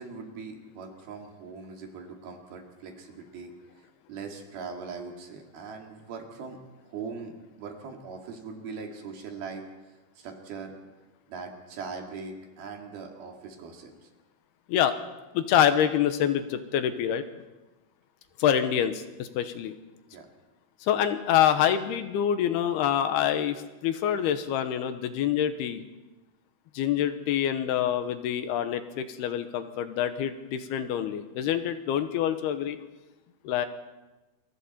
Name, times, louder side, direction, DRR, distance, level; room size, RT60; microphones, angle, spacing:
voice 1, 0.0-3.5 4.1-6.6 6.9-10.7 11.3-14.1 20.1-20.3, right 5 dB, 65° right, 2 dB, 4.1 m, -41 dB
voice 2, 15.3-17.2 18.4-19.7 20.8-25.8 26.7-32.8 33.4-33.7, left 10 dB, 80° left, 9 dB, 3.0 m, -26 dB
28.5 x 23.0 x 4.3 m, 1.1 s
omnidirectional pair, 4.7 m